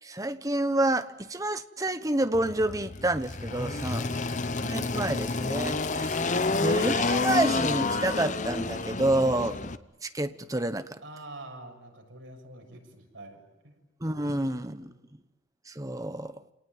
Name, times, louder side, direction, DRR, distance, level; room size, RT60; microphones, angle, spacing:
voice 1, 0.0-4.1 4.6-6.2 6.6-9.7 10.0-11.0 14.0-14.9 15.7-16.3, right 1 dB, 15° right, 1.0 m, -29 dB
Engine, 2.3-9.8, left 3 dB, 40° left, 0.9 m, -29 dB
voice 2, 3.7-4.5 11.0-13.8 14.3-15.0, right 1 dB, 85° right, 6.5 m, -47 dB
29.5 x 19.0 x 9.4 m
head